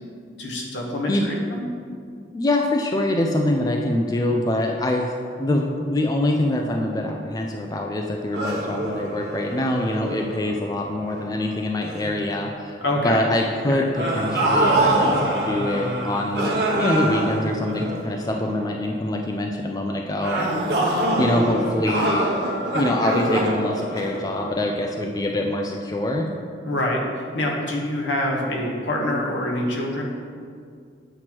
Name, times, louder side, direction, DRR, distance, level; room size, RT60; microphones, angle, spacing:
voice 1, 0.4-1.6 12.8-13.2 13.7-13.8 26.6-30.0, left 1 dB, 75° left, -1 dB, 1.1 m, -25 dB
voice 2, 2.3-5.1 5.4-12.8 13.0-20.6 21.0-22.3 22.7-26.3, left 1 dB, 20° left, 2 dB, 0.3 m, -24 dB
sound 1, 8.3-11.4 11.8-12.1 13.9-18.5 20.2-24.8, right 1 dB, 60° right, 1.1 m, -25 dB
7.8 x 3.0 x 6.0 m, 2.2 s
head